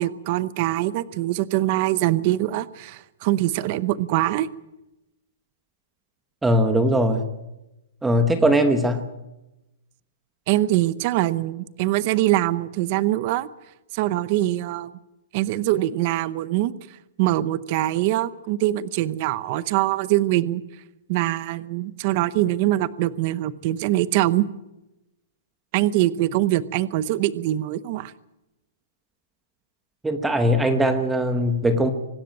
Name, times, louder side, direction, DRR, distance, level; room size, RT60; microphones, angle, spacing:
voice 1, 0.0-4.5 10.5-13.5 13.9-14.9 15.3-16.7 17.2-20.6 21.1-24.5 25.7-28.1, right 15 dB, 30° right, 17 dB, 0.8 m, -23 dB
voice 2, 6.4-7.3 8.0-9.0 30.0-31.9, equal, 5° right, 7 dB, 1.0 m, -20 dB
24.5 x 12.5 x 9.0 m, 0.94 s
hypercardioid pair, 175°, 0 cm